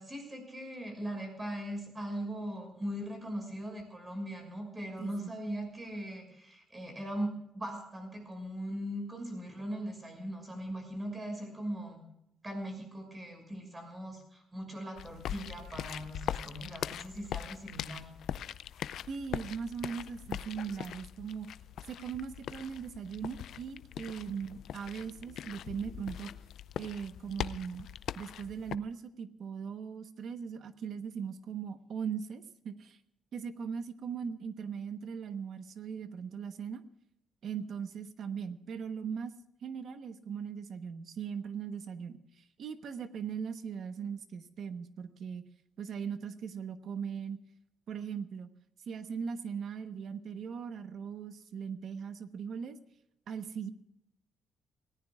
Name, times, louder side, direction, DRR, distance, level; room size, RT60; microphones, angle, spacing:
voice 1, 0.0-12.0 12.4-18.1, equal, 15° right, 3 dB, 6.2 m, -40 dB
voice 2, 5.0-5.3 19.1-21.5 21.9-26.3 26.8-27.9 28.2-33.0 33.3-36.8 37.4-39.3 39.6-45.5 45.8-47.4 47.9-48.5 48.9-52.8 53.3-53.7, right 6 dB, 55° right, 9 dB, 1.1 m, -39 dB
sound 1, 15.0-28.8, left 10 dB, 70° left, 0.5 m, -41 dB
28.5 x 17.5 x 2.4 m, 0.81 s
cardioid pair, 155°, 0 cm